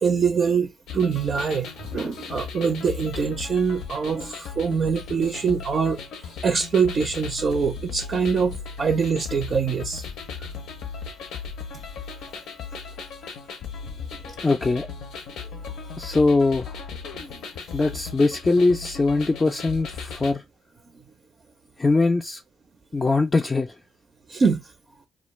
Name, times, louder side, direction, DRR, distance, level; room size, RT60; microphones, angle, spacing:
voice 1, 0.0-6.0 6.4-10.1 15.6-15.7 24.3-24.6, right 5 dB, 45° right, 0.4 m, -24 dB
sound 1, 0.9-20.3, left 5 dB, 85° left, 0.5 m, -37 dB
voice 2, 14.4-14.9 16.0-16.8 17.7-20.4 21.8-22.4 22.9-23.7, left 3 dB, 25° left, 0.3 m, -21 dB
2.2 x 2.2 x 3.1 m
cardioid pair, 90°, 0 cm